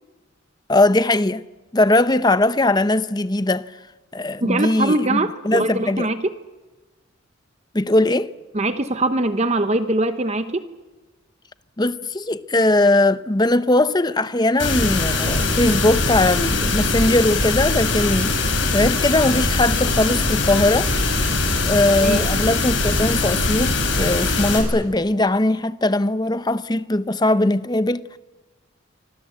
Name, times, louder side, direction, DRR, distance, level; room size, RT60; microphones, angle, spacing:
voice 1, 0.7-1.4 1.7-3.7 4.1-6.1 7.7-8.3 11.8-20.9 21.7-28.0, left 2 dB, 20° left, 0.8 m, -20 dB
voice 2, 4.4-6.3 8.5-10.7 22.0-22.2, right 2 dB, 30° right, 0.9 m, -22 dB
sound 1, 14.6-24.6, left 3 dB, 65° left, 7.3 m, -21 dB
27.5 x 25.0 x 7.9 m
head